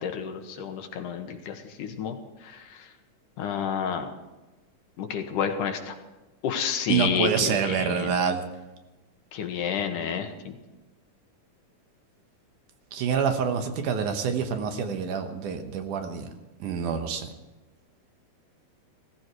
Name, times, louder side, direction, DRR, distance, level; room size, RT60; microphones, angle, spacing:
voice 1, 0.0-2.2 3.4-4.1 5.0-5.9 6.4-8.1 9.3-10.5, left 7 dB, 75° left, 5 dB, 2.7 m, -30 dB
voice 2, 6.9-8.4 12.9-16.3 16.6-17.3, right 7 dB, 70° right, 6 dB, 2.6 m, -27 dB
16.5 x 15.0 x 4.7 m, 1.1 s
omnidirectional pair, 3.9 m